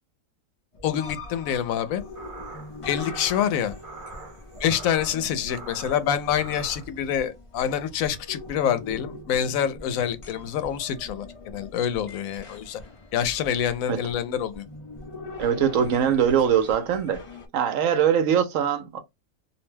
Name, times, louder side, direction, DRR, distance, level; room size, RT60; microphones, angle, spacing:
sound 1, 0.7-17.5, left 2 dB, 45° left, 0.4 m, -42 dB
voice 1, 0.8-2.0 2.8-3.7 4.6-12.8 13.1-14.6, left 9 dB, 80° left, 1.0 m, -26 dB
sound 2, 2.0-6.9, right 3 dB, 45° right, 0.8 m, -43 dB
voice 2, 15.4-17.2 17.5-19.0, right 8 dB, 75° right, 1.0 m, -22 dB
2.6 x 2.1 x 3.1 m
omnidirectional pair, 1.4 m